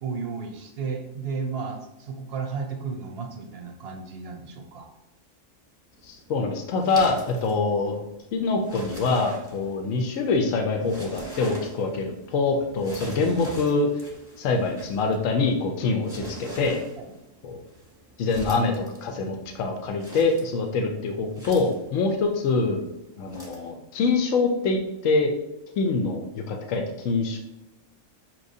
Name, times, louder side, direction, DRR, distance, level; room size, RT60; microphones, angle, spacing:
voice 1, 0.0-4.9 17.0-17.2, right 5 dB, 60° right, 3 dB, 0.7 m, -33 dB
sound 1, 5.9-23.7, right 1 dB, 5° right, 0.9 m, -44 dB
voice 2, 6.0-8.0 8.3-13.9 14.4-16.8 17.4-17.6 18.2-22.9 23.2-24.8 25.0-25.3 25.8-27.4, left 3 dB, 90° left, 3 dB, 1.0 m, -25 dB
5.7 x 3.0 x 2.7 m, 0.93 s
omnidirectional pair, 1.3 m